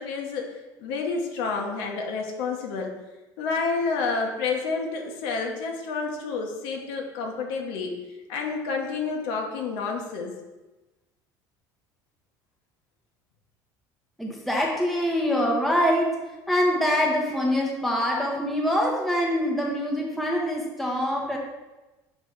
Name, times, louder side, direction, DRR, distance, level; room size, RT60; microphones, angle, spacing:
voice 1, 0.0-2.9 3.4-7.9 8.3-10.4, left 4 dB, 75° left, 1 dB, 1.1 m, -29 dB
voice 2, 14.2-16.1 16.5-21.4, equal, ahead, -2 dB, 0.9 m, -24 dB
6.3 x 3.3 x 4.9 m, 1.1 s
cardioid pair, 155°, 9 cm